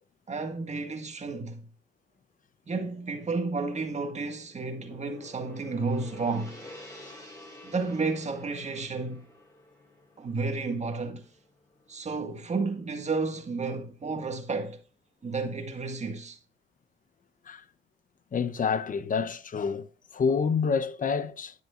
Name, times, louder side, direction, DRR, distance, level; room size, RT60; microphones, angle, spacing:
voice 1, 0.3-1.6 2.7-6.6 7.6-9.3 10.2-11.3 11.9-14.8 15.2-16.4, right 3 dB, 35° right, 1.9 m, -32 dB
Gong, 4.1-12.4, left 1 dB, 15° left, 5.5 m, -50 dB
voice 2, 18.3-19.9 20.1-21.5, left 5 dB, 40° left, 0.9 m, -28 dB
11.0 x 9.4 x 2.6 m
cardioid pair, 90°, 20 cm